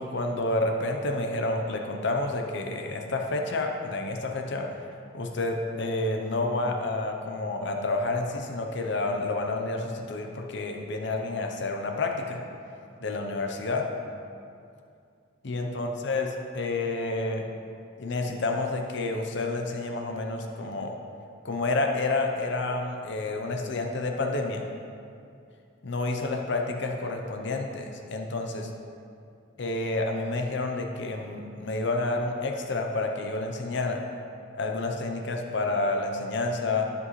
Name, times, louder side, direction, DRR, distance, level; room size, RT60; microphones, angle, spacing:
voice 1, 0.0-4.8 5.1-12.4 13.0-13.9 15.4-16.3 16.5-17.5 18.0-21.0 21.4-24.6 25.8-28.7 29.6-34.0 34.5-36.9, left 2 dB, 60° left, 3 dB, 0.7 m, -29 dB
12.5 x 5.3 x 3.2 m, 2.4 s
head